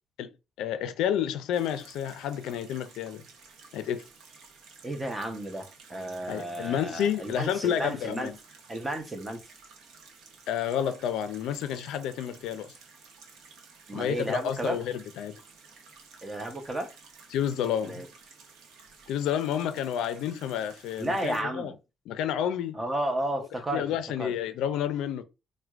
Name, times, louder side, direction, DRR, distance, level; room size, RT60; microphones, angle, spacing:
voice 1, 0.6-3.2 3.7-4.0 6.3-8.3 10.5-12.7 13.9-15.4 17.3-18.0 19.1-21.7 22.1-22.8 23.7-25.2, left 9 dB, 90° left, 0.4 m, -30 dB
sound 1, 1.5-21.4, right 5 dB, 85° right, 0.8 m, -53 dB
voice 2, 4.8-8.3 8.7-9.4 13.9-14.8 16.2-16.9 17.8-18.1 21.0-21.7 22.7-23.9 24.2-24.3, right 1 dB, 20° right, 0.8 m, -32 dB
4.3 x 2.1 x 2.4 m
cardioid pair, 90°, 0 cm